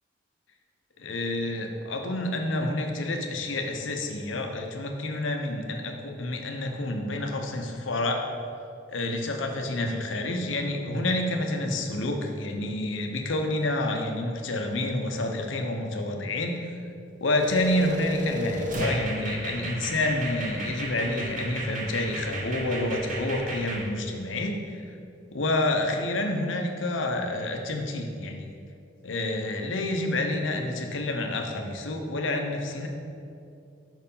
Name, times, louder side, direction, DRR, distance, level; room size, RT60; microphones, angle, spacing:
voice 1, 1.0-8.2 8.9-16.7 17.2-24.8 25.3-28.5 29.0-32.9, left 2 dB, 85° left, 3 dB, 0.8 m, -28 dB
sound 1, 17.4-23.8, right 1 dB, 40° right, 1.0 m, -33 dB
6.0 x 4.5 x 5.4 m, 2.5 s
head